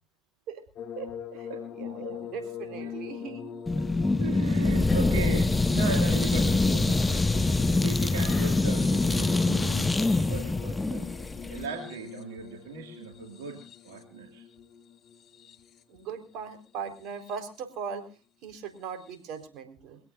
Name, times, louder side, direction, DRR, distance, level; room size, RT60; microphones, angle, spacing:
sound 1, 0.8-16.0 16.9-17.6 19.0-19.2, left 8 dB, 50° left, 1.5 m, -41 dB
voice 1, 1.0-3.6 15.9-18.1 18.4-20.0, right 6 dB, 60° right, 8 dB, 4.1 m, -39 dB
sound 2, 3.7-11.7, left 2 dB, 15° left, 1.7 m, -25 dB
voice 2, 4.2-11.1 11.5-14.5, right 6 dB, 85° right, 2 dB, 2.4 m, -38 dB
sound 3, 4.6-9.9, left 4 dB, 35° left, 6.5 m, -40 dB
23.0 x 17.0 x 2.6 m, 0.34 s
hypercardioid pair, 70°, 0 cm